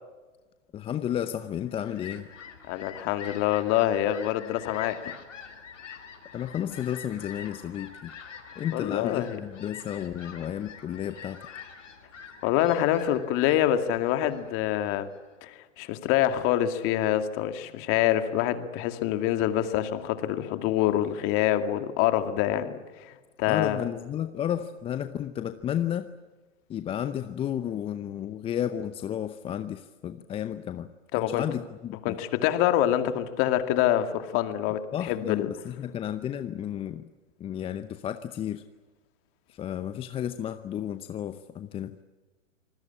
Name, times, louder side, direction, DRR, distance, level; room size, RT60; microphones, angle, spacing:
voice 1, 0.7-2.3 6.3-8.1 8.6-11.4 23.5-26.1 26.7-30.9 31.2-32.2 34.9-37.1 37.4-38.6 39.5-42.0, left 10 dB, 15° left, 11 dB, 0.7 m, -32 dB
Fowl, 1.4-15.3, left 7 dB, 75° left, 5.1 m, -46 dB
voice 2, 2.7-5.1 8.7-9.4 12.4-15.1 15.4-23.8 31.1-31.4 32.0-35.5, left 12 dB, 35° left, 9 dB, 2.3 m, -26 dB
27.0 x 20.5 x 8.8 m, 1.3 s
hypercardioid pair, 120°, 38 cm